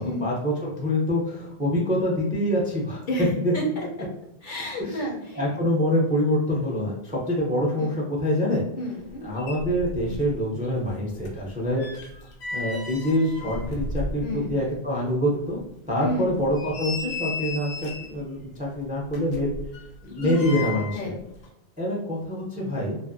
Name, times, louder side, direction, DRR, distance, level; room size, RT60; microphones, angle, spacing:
voice 1, 0.0-3.0 3.4-3.5 4.8-5.1 5.4-8.7 9.2-11.8 12.5-15.6 15.9-19.5 20.0-21.2 21.8-23.0, left 1 dB, 15° right, -3 dB, 0.3 m, -25 dB
voice 2, 3.1-4.1 4.4-5.4 7.8-7.9 8.8-9.2 14.2-14.5 16.0-16.3 20.2-20.6 20.9-21.2, left 1 dB, 60° left, -1 dB, 0.7 m, -30 dB
sound 1, 9.1-9.2 9.4-10.4 10.6-14.6 15.0-15.1 15.6-15.7 16.3-18.2 19.1-21.1 21.3-21.5, left 3 dB, 85° left, 0.8 m, -35 dB
2.5 x 2.5 x 2.5 m, 0.83 s
omnidirectional pair, 1.1 m